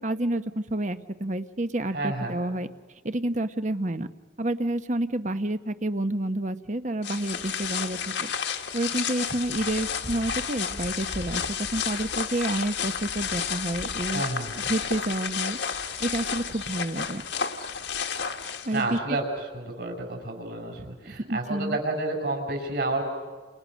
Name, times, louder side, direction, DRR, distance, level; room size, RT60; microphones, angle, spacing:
voice 1, 0.0-2.7 3.0-4.1 4.4-8.3 8.7-14.2 14.6-15.6 16.0-17.2 18.6-19.0 20.8-21.8, right 1 dB, 40° right, 10 dB, 1.0 m, -29 dB
voice 2, 1.9-2.4 14.1-14.5 18.4-19.2 19.5-23.0, right 2 dB, 60° right, 2 dB, 6.8 m, -30 dB
sound 1, 7.0-19.0, left 7 dB, 70° left, 1.7 m, -31 dB
29.5 x 29.0 x 6.4 m, 1.4 s
head